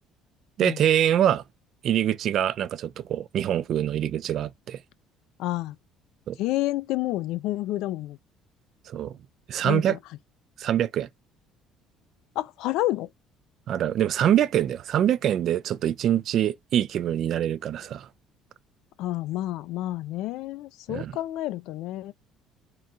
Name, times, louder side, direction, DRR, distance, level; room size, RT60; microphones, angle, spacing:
voice 1, 0.6-1.4 1.8-4.8 6.3-6.4 8.9-9.2 9.5-10.0 10.6-11.1 13.7-18.1 20.9-21.1, right 10 dB, 45° right, 0.3 m, -24 dB
voice 2, 5.4-5.8 6.4-8.2 9.6-10.0 12.4-13.1 19.0-22.1, left 16 dB, 75° left, 0.4 m, -29 dB
3.8 x 2.3 x 4.1 m
cardioid pair, 160°, 0 cm